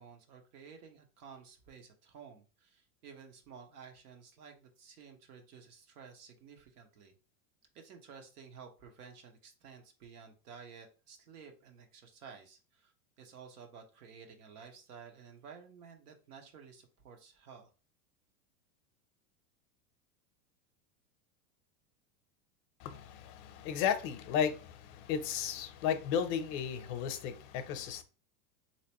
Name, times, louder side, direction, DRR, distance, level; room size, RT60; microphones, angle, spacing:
voice 1, 0.0-7.1 7.7-17.7, right 6 dB, 85° right, 1.1 m, -53 dB
voice 2, 22.8-28.0, left 8 dB, 50° left, 0.6 m, -34 dB
3.3 x 2.9 x 2.9 m
supercardioid pair, 130°, 45 cm